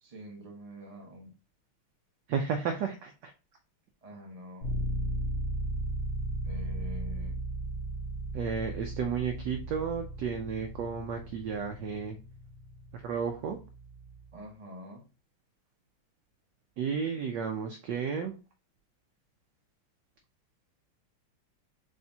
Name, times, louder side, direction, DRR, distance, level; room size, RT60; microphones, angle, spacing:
voice 1, 0.0-1.3 4.0-4.8 6.4-7.4 14.3-15.1, left 1 dB, 20° right, 1 dB, 1.0 m, -46 dB
voice 2, 2.3-3.3 8.3-12.2 12.9-13.6 16.8-18.3, right 6 dB, 75° right, 4 dB, 1.0 m, -33 dB
sound 1, 4.6-14.3, right 1 dB, 65° left, 1.9 m, -36 dB
6.7 x 2.7 x 2.8 m, 0.32 s
omnidirectional pair, 2.4 m